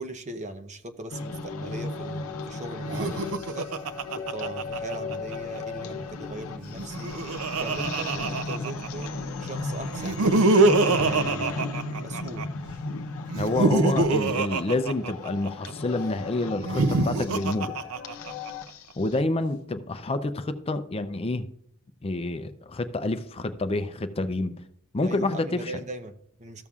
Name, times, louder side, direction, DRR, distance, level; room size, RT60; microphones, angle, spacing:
voice 1, 0.0-3.7 4.1-10.2 10.8-12.6 25.0-26.7, right 2 dB, 35° right, 6 dB, 0.7 m, -39 dB
sound 1, 1.1-19.2, left 3 dB, 80° left, 0.7 m, -35 dB
Laughter, 2.8-5.4 6.7-9.1 9.9-12.5 13.3-15.7 16.6-18.5, right 3 dB, 85° right, 0.6 m, -25 dB
voice 2, 13.4-17.8 19.0-21.5 22.0-24.5 24.9-25.7, left 2 dB, 25° left, 10 dB, 0.5 m, -28 dB
14.0 x 7.0 x 2.4 m, 0.70 s
head